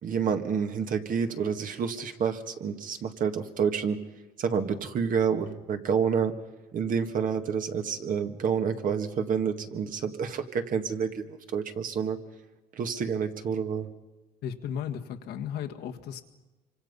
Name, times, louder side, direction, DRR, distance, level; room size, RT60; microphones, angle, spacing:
voice 1, 0.0-4.0 4.4-6.4 6.7-12.2 12.7-13.9, right 6 dB, 55° right, 6 dB, 1.8 m, -28 dB
voice 2, 14.4-16.2, left 8 dB, 80° left, 4 dB, 1.8 m, -35 dB
26.0 x 25.0 x 5.5 m, 1.1 s
cardioid pair, 110°, 17 cm